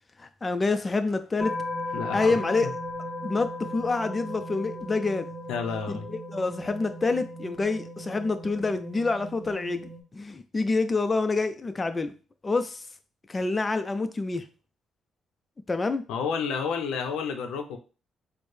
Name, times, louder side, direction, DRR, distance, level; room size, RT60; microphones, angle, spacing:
voice 1, 0.2-1.6 2.1-2.7 3.2-5.3 5.9-12.1 12.4-12.9 13.3-14.5 15.7-16.1, left 3 dB, 25° left, 9 dB, 0.4 m, -27 dB
sound 1, 1.4-10.0, left 1 dB, 25° right, 1.0 m, -37 dB
voice 2, 1.9-2.7 5.5-6.1 16.1-17.8, left 6 dB, 90° left, 5 dB, 0.5 m, -31 dB
4.4 x 2.0 x 3.2 m, 0.35 s
cardioid pair, 90°, 0 cm